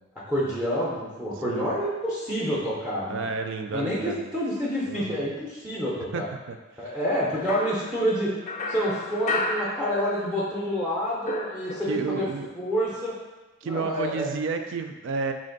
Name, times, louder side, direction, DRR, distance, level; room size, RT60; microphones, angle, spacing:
voice 1, 0.3-3.3 3.7-6.3 6.8-8.3 8.7-12.3 12.5-13.1 13.6-14.3, equal, 5° right, -5 dB, 0.6 m, -28 dB
voice 2, 3.1-4.3 4.9-5.3 6.1-6.6 6.9-7.0 11.9-12.5 13.6-15.3, right 4 dB, 65° right, 6 dB, 0.3 m, -31 dB
sound 1, 7.5-10.5 10.8-12.2, left 2 dB, 35° left, 0.4 m, -33 dB
4.1 x 2.5 x 3.8 m, 1.1 s
head